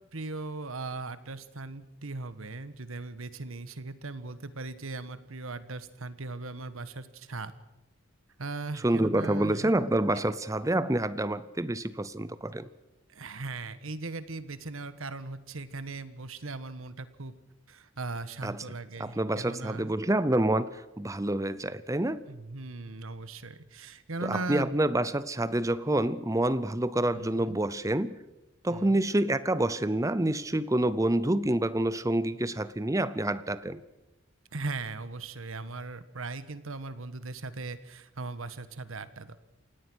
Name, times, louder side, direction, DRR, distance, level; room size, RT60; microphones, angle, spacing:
voice 1, 0.1-7.5 8.4-9.7 13.1-17.3 17.7-19.9 22.3-24.8 27.1-27.6 28.7-29.0 34.5-39.4, right 3 dB, 80° right, 1.4 m, -39 dB
voice 2, 8.8-12.7 18.4-18.6 19.0-20.7 21.0-22.2 24.2-28.2 28.6-33.8, right 1 dB, 15° right, 0.7 m, -27 dB
28.0 x 17.5 x 6.3 m
head